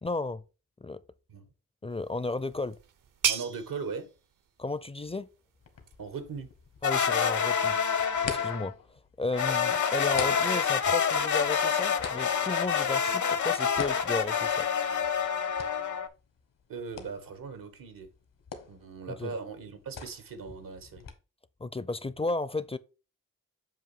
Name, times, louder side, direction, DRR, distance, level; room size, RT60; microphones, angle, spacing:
voice 1, 0.0-0.4 0.8-1.0 1.8-2.8 4.6-5.3 6.8-7.8 8.2-8.7 9.2-14.7 19.2-19.3 21.6-22.8, left 2 dB, 20° left, 0.4 m, -33 dB
sound 1, 1.9-7.3, right 8 dB, 70° right, 0.7 m, -37 dB
voice 2, 3.3-4.1 6.0-6.5 16.7-18.1 18.7-21.0, right 5 dB, 85° right, 1.3 m, -39 dB
sound 2, 5.6-21.1, left 6 dB, 75° left, 1.3 m, -46 dB
sound 3, 6.8-8.7 9.3-16.1, left 7 dB, 60° left, 0.8 m, -27 dB
7.5 x 2.7 x 5.3 m
cardioid pair, 50°, 33 cm